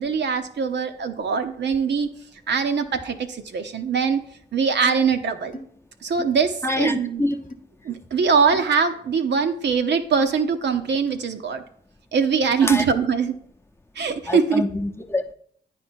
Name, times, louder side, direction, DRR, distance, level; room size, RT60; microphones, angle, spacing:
voice 1, 0.0-2.1 2.5-4.2 4.5-5.6 6.0-7.2 7.8-11.6 12.1-13.3 13.9-14.6, right 5 dB, 60° right, 0.8 m, -22 dB
sound 1, 4.0-4.2 4.8-5.0 5.5-5.7 6.2-6.4 7.3-7.5 8.5-8.7 9.3-9.5 10.2-10.3 11.1-11.3, left 1 dB, 40° left, 0.9 m, -37 dB
voice 2, 6.6-7.4 12.6-12.8 14.3-15.3, left 1 dB, 10° left, 0.8 m, -25 dB
9.4 x 4.5 x 4.5 m
supercardioid pair, 40°, 20 cm